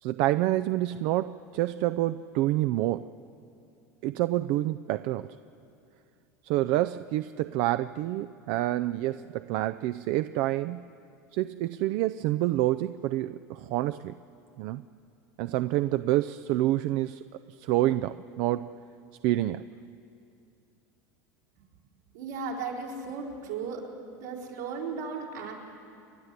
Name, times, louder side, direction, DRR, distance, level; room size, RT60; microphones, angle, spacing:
voice 1, 0.0-3.0 4.0-5.4 6.4-10.8 11.3-14.1 14.6-14.8 15.4-18.7 19.2-19.6, right 15 dB, 60° right, 12 dB, 0.5 m, -28 dB
voice 2, 22.1-23.8 24.1-25.5, right 5 dB, 80° right, -2 dB, 4.3 m, -35 dB
29.5 x 11.0 x 8.2 m, 2.6 s
hypercardioid pair, 90°, 9 cm